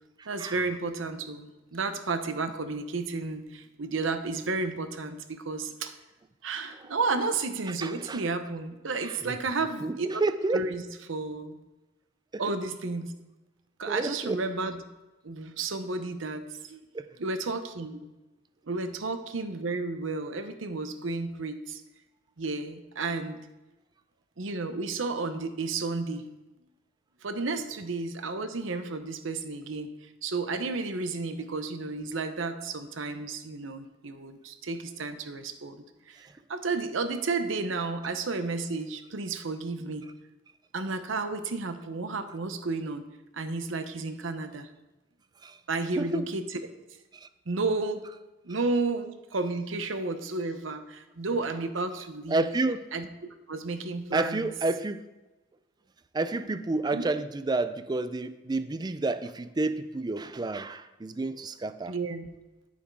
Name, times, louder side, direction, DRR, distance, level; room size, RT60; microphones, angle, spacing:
voice 1, 0.3-5.9 6.4-10.2 10.5-10.8 11.1-11.6 12.4-13.1 13.8-14.8 15.2-16.8 17.2-18.1 18.7-21.8 22.4-23.4 24.4-26.3 27.2-29.9 30.2-40.0 40.7-43.0 43.3-44.7 45.7-46.6 47.5-48.0 48.4-52.5 52.9-53.1 53.5-54.5 56.9-57.1 61.9-62.3, right 3 dB, 85° right, 9 dB, 0.8 m, -32 dB
voice 2, 7.8-8.2 9.0-9.4 9.8-10.7 12.3-12.4 13.9-14.4 16.9-17.1 45.4-45.6 46.0-46.3 47.2-47.3 52.3-52.9 54.1-55.1 56.1-61.9, right 2 dB, 20° right, 12 dB, 0.4 m, -30 dB
9.4 x 7.1 x 4.7 m, 1.1 s
head